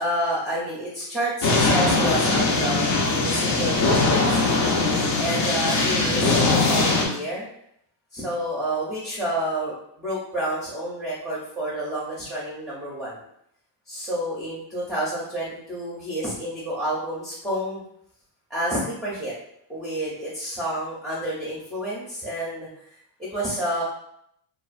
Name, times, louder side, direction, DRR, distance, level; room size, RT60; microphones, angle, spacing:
voice 1, 0.0-4.6 5.2-7.5 8.1-13.2 13.9-17.8 18.5-19.3 19.7-22.7 23.2-23.8, right 1 dB, ahead, -7 dB, 0.5 m, -29 dB
sound 1, 1.4-7.1, left 3 dB, 85° left, 0.7 m, -21 dB
2.3 x 2.2 x 2.4 m, 0.72 s
cardioid pair, 120°, 45 cm